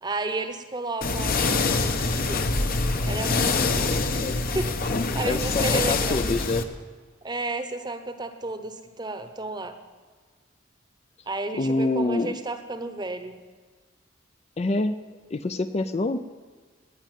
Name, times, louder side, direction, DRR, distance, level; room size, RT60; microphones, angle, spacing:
voice 1, 0.0-2.5 3.0-3.9 4.5-6.2 7.2-9.8 11.3-13.4, right 2 dB, 20° right, 8 dB, 0.9 m, -32 dB
sound 1, 1.0-6.6, left 3 dB, 50° left, 0.9 m, -25 dB
voice 2, 5.3-6.6 11.5-12.4 14.6-14.9 15.3-16.2, left 2 dB, 35° left, 10 dB, 0.4 m, -26 dB
18.5 x 6.4 x 9.1 m, 1.5 s
head